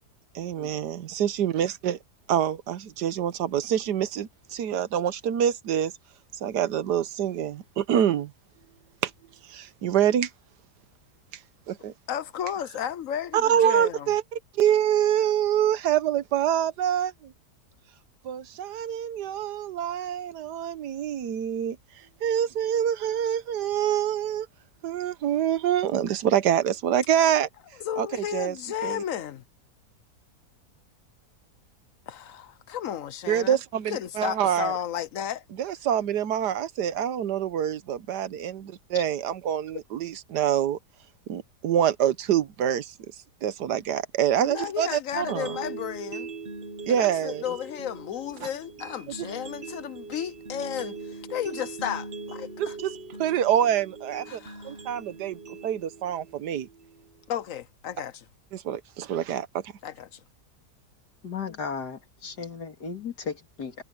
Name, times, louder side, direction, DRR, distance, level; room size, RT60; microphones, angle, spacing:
voice 1, 0.3-2.0 2.3-5.9 6.4-8.3 9.0-9.1 9.4-10.3 11.7-11.9 13.3-14.2 14.5-17.3 18.2-24.5 24.8-27.5 28.0-28.1 28.3-28.5 28.8-29.0 33.3-34.7 35.6-40.8 41.3-42.9 43.4-45.5 46.9-47.4 48.4-48.5 52.6-52.9 53.2-56.7 58.5-59.7, right 10 dB, 80° right, 1.5 m, -26 dB
voice 2, 12.1-14.1 27.8-29.4 32.1-33.6 33.9-35.4 44.4-46.3 46.9-52.8 54.3-54.8 57.3-58.3 59.8-60.2, left 9 dB, 60° left, 1.0 m, -33 dB
sound 1, 45.1-57.1, right 3 dB, 40° right, 1.3 m, -41 dB
voice 3, 61.2-63.8, left 5 dB, 80° left, 2.9 m, -35 dB
omnidirectional pair, 1.7 m